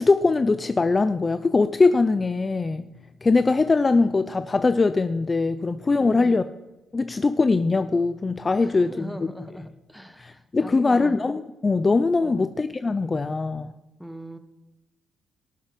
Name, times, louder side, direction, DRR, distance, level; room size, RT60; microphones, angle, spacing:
voice 1, 0.0-2.9 3.2-6.4 6.9-9.3 10.2-13.7, left 3 dB, 30° left, 11 dB, 0.5 m, -22 dB
voice 2, 6.0-6.5 8.6-11.2 12.2-12.5 14.0-14.4, equal, ahead, 9 dB, 1.2 m, -40 dB
18.5 x 7.2 x 5.2 m, 1.1 s
cardioid pair, 90°, 0 cm